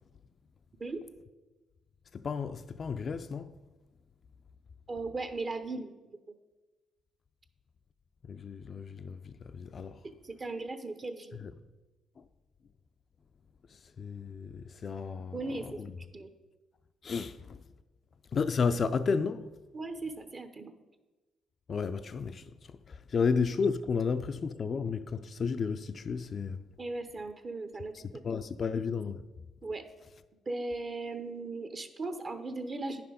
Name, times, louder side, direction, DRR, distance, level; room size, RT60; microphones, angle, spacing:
voice 1, 2.1-3.5 8.3-10.0 12.2-12.3 13.7-15.4 15.6-15.9 17.0-17.6 18.3-19.5 21.7-26.6 27.9-29.3, left 5 dB, 45° left, 0.3 m, -32 dB
voice 2, 4.9-5.9 6.3-6.4 10.0-11.5 15.3-16.3 19.7-20.7 26.8-28.2 29.6-29.9 30.5-33.0, right 3 dB, 35° right, 0.7 m, -38 dB
9.5 x 5.8 x 5.0 m
cardioid pair, 90°, 0 cm